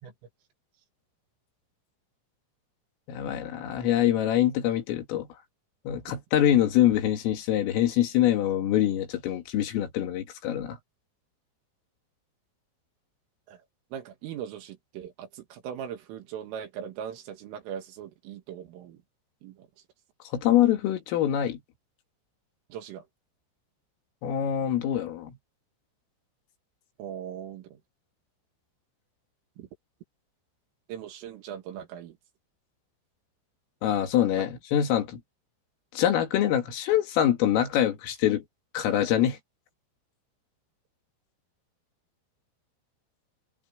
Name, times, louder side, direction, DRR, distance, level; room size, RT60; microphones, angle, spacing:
voice 1, 3.1-5.3 5.9-10.8 20.3-21.6 24.2-25.4 33.8-35.2 35.9-38.4 38.7-39.4, left 11 dB, 90° left, 5.1 m, -24 dB
voice 2, 13.9-19.0 19.4-19.7 22.7-23.0 27.0-27.8 29.6-29.7 30.9-32.2 34.3-34.4, right 9 dB, 85° right, 4.8 m, -39 dB
omnidirectional pair, 5.7 m